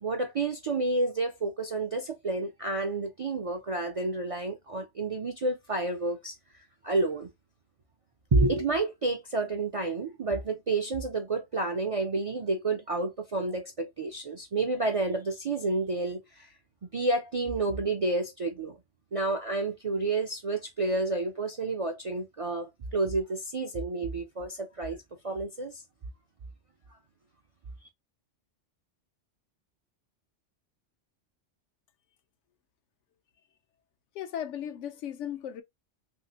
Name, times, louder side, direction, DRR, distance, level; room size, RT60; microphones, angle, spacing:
voice 1, 0.0-7.3 8.3-16.6 16.8-18.8 19.1-25.8, right 2 dB, 60° right, 0.3 m, -30 dB
voice 2, 34.1-35.6, left 10 dB, 85° left, 0.9 m, -36 dB
3.2 x 2.7 x 2.7 m
omnidirectional pair, 1.2 m